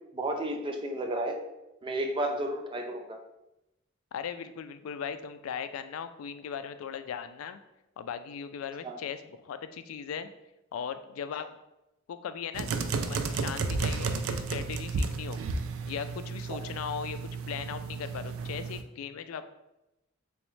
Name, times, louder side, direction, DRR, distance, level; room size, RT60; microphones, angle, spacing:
voice 1, 0.0-1.4 1.8-3.2 8.8-9.0 16.5-16.6, right 1 dB, 25° right, 4 dB, 0.4 m, -32 dB
voice 2, 4.1-7.6 8.0-10.3 10.7-11.5 12.1-12.7 13.1-15.4 15.9-17.2 17.5-19.5, left 7 dB, 90° left, 10 dB, 0.3 m, -38 dB
sound 1, 12.5-18.8, right 4 dB, 90° right, 0.4 m, -33 dB
3.5 x 3.0 x 3.1 m, 0.92 s
head